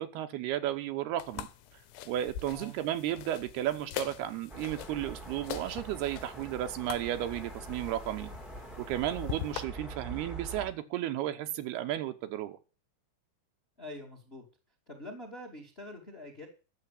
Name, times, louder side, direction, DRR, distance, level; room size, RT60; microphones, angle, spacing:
voice 1, 0.0-1.5 2.1-8.3 8.8-12.6, right 12 dB, 75° right, 7 dB, 2.8 m, -33 dB
sound 1, 1.2-9.6, left 10 dB, 85° left, 3.1 m, -43 dB
sound 2, 4.5-10.7, right 2 dB, ahead, 1.1 m, -44 dB
voice 2, 13.8-14.5 14.9-16.5, left 1 dB, 20° left, 5 dB, 1.8 m, -45 dB
11.5 x 7.3 x 8.4 m, 0.34 s
omnidirectional pair, 4.9 m